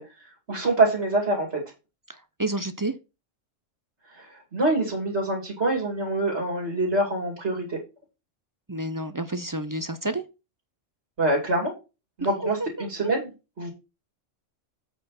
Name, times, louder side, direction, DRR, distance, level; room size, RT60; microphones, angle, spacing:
voice 1, 0.0-1.6 4.1-7.8 11.2-11.7 12.2-13.3 13.6-13.7, right 2 dB, 55° right, 3.0 m, -25 dB
voice 2, 2.1-2.9 8.7-10.2 12.6-13.1, right 2 dB, 30° right, 0.4 m, -30 dB
8.2 x 4.5 x 5.8 m
omnidirectional pair, 1.3 m